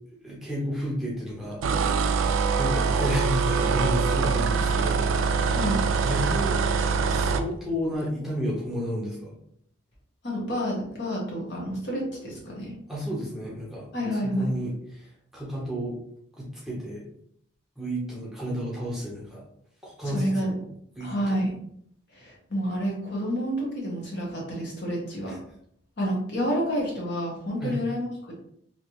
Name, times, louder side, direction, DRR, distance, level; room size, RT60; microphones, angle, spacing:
voice 1, 0.2-1.9 2.6-5.0 5.4-5.6 6.0-6.6 7.1-9.3 12.9-13.9 14.1-16.0 16.4-17.0 17.8-19.4 19.8-20.7 21.0-21.4 25.3-25.4 27.6-27.8, equal, ahead, -6 dB, 0.8 m, -32 dB
sound 1, 1.6-7.5, right 5 dB, 75° right, 0.3 m, -24 dB
voice 2, 10.2-12.7 13.9-14.5 20.1-20.5 21.0-21.5 22.1-25.4 26.0-28.4, equal, 55° left, -3 dB, 1.1 m, -29 dB
3.0 x 2.8 x 2.9 m, 0.68 s
head